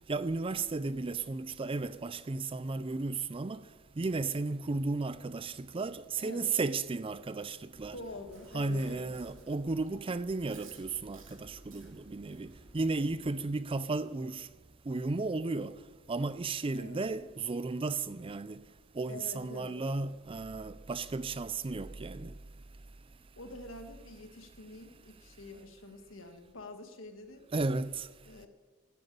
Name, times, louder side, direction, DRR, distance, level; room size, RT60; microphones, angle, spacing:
voice 1, 0.1-3.6 4.0-8.0 8.5-14.5 14.9-15.8 16.1-18.6 18.9-22.3 27.5-28.1, right 3 dB, 25° right, 0.4 m, -34 dB
voice 2, 6.2-6.5 7.9-9.2 16.7-17.1 19.1-19.8 23.4-27.5 28.2-28.5, left 2 dB, 75° left, 1.7 m, -46 dB
Chewing mastication, 7.7-13.5, right 2 dB, 70° right, 2.5 m, -55 dB
13.0 x 7.9 x 10.0 m
head